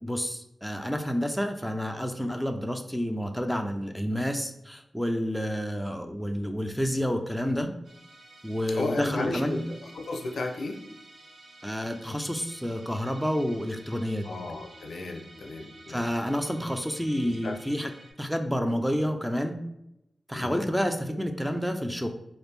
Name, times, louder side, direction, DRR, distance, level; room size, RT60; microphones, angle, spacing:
voice 1, 0.0-7.7 8.4-9.6 11.6-14.2 15.9-17.9 18.2-19.6 20.3-22.1, equal, ahead, 6 dB, 0.3 m, -29 dB
Musical instrument, 7.8-18.1, right 2 dB, 60° right, 0.8 m, -52 dB
voice 2, 8.7-10.8 14.3-16.0 17.2-17.6 20.3-20.7, left 2 dB, 75° left, 3 dB, 0.4 m, -34 dB
3.3 x 2.4 x 3.2 m, 0.84 s
wide cardioid pair, 120°, 0 cm